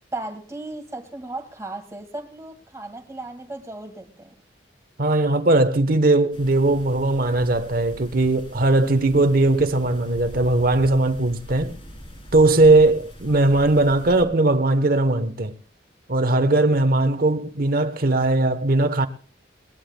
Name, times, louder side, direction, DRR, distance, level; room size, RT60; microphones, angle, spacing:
voice 1, 0.1-4.3, right 2 dB, 15° right, 1.9 m, -35 dB
voice 2, 5.0-11.7 12.3-15.6 16.1-19.1, right 2 dB, 55° right, 1.0 m, -19 dB
sound 1, 6.3-14.2, equal, 30° left, 3.3 m, -42 dB
21.0 x 19.0 x 2.2 m
head